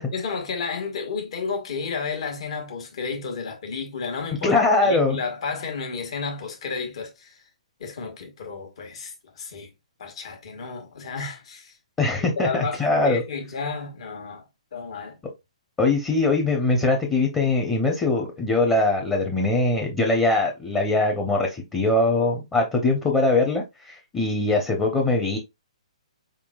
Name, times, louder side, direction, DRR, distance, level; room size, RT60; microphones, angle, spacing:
voice 1, 0.1-4.5 4.8-7.4 7.8-9.7 10.0-11.7 12.4-14.5 14.7-15.2, left 5 dB, 55° left, 1.5 m, -32 dB
voice 2, 4.4-5.2 12.0-13.2 15.8-25.4, left 2 dB, 15° left, 0.8 m, -22 dB
4.4 x 3.7 x 2.4 m
figure-of-eight pair, 130°, 4 cm